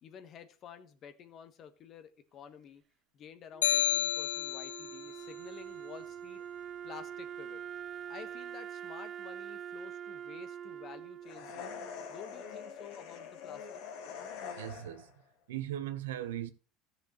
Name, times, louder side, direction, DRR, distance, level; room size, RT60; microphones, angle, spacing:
voice 1, 0.0-2.8 3.1-6.4 6.8-7.6 8.1-11.8 12.1-13.8, left 7 dB, 50° left, 1.4 m, -51 dB
Wind instrument woodwind instrument, 3.5-12.6, right 9 dB, 45° right, 0.4 m, -45 dB
sound 1, 3.6-5.0, left 10 dB, 85° left, 0.3 m, -30 dB
sound 2, 11.2-15.1, left 7 dB, 70° left, 1.9 m, -44 dB
voice 2, 14.6-15.1 15.5-16.5, right 12 dB, 80° right, 0.9 m, -38 dB
15.0 x 6.8 x 3.1 m
hypercardioid pair, 80°, 0 cm